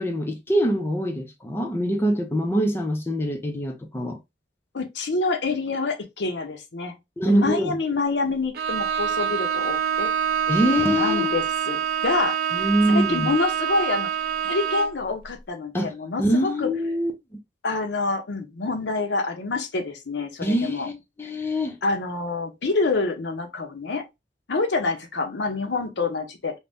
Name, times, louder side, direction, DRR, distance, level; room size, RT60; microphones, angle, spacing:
voice 1, 0.0-4.2 7.2-7.8 10.5-11.4 12.5-13.3 15.7-15.9 16.2-17.1 20.4-20.9 21.2-21.8, equal, 15° left, 0.4 m, -24 dB
voice 2, 4.7-7.0 7.3-10.1 10.5-11.8 12.0-14.1 14.4-16.7 17.6-20.9 21.8-24.1 24.5-26.5, left 3 dB, 75° left, 0.7 m, -27 dB
Bowed string instrument, 8.5-15.0, right 8 dB, 60° right, 0.4 m, -26 dB
2.6 x 2.1 x 3.3 m
head